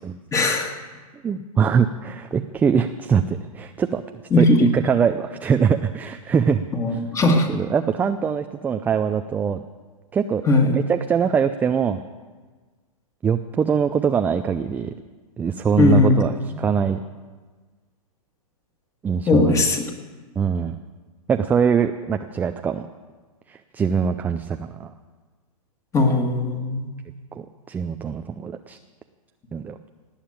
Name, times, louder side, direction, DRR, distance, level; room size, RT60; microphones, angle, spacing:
voice 1, 0.3-0.7 4.3-4.7 6.7-7.5 10.5-10.7 15.8-16.2 19.3-19.8 25.9-26.9, left 2 dB, 15° left, 4 dB, 1.9 m, -18 dB
voice 2, 1.2-4.0 4.4-6.7 7.5-9.6 10.1-10.4 10.7-12.0 13.2-14.9 15.4-17.0 19.0-19.6 20.4-20.8 21.3-22.9 23.5-24.9 27.3-28.8 29.5-29.8, right 6 dB, 10° right, 7 dB, 0.4 m, -23 dB
18.5 x 7.3 x 8.8 m, 1.4 s
hypercardioid pair, 130°, 19 cm